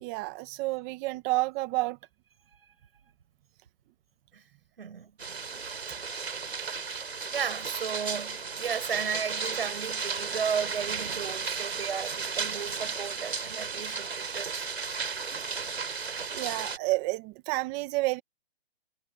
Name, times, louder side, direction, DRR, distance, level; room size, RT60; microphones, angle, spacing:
voice 1, 0.0-2.0 16.3-18.2, right 21 dB, 10° right, 0.4 m, -30 dB
voice 2, 4.8-5.1 7.1-14.7, right 7 dB, 70° right, 4.5 m, -34 dB
sound 1, 5.2-16.8, right 5 dB, 85° right, 3.8 m, -34 dB
hypercardioid pair, 145°, 31 cm